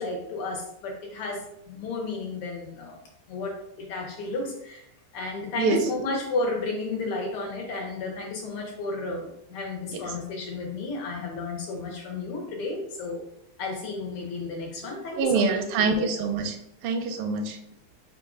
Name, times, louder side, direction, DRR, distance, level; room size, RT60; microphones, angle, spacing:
voice 1, 0.0-3.0 3.3-4.9 5.1-13.2 13.6-16.1, left 3 dB, 85° left, 0 dB, 2.0 m, -32 dB
voice 2, 15.2-16.6 16.8-17.6, right 4 dB, 80° right, 4 dB, 1.5 m, -25 dB
4.6 x 2.5 x 4.7 m, 0.78 s
omnidirectional pair, 2.3 m